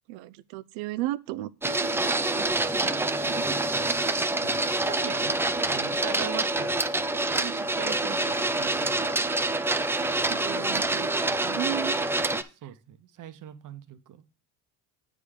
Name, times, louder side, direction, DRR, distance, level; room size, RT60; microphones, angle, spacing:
voice 1, 0.1-2.1 10.3-11.1 11.4-12.0, right 16 dB, 90° right, 0.6 m, -34 dB
Printer, 1.6-12.4, right 2 dB, 5° right, 0.3 m, -26 dB
voice 2, 1.9-2.9 3.2-6.8 7.3-9.2 12.4-14.2, right 9 dB, 45° right, 1.0 m, -42 dB
8.4 x 3.8 x 6.5 m
cardioid pair, 110°, 44 cm